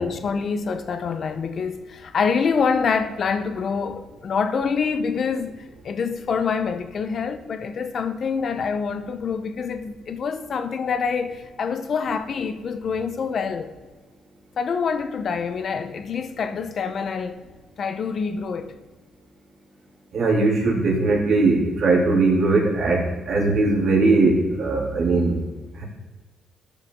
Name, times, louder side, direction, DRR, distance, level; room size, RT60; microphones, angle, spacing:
voice 1, 0.0-13.7 14.6-17.4 17.8-18.7, left 5 dB, 55° left, 0.8 m, -26 dB
voice 2, 20.1-25.4 25.8-25.9, right 3 dB, 60° right, 2.8 m, -20 dB
13.0 x 5.3 x 3.6 m
cardioid pair, 90°, 0 cm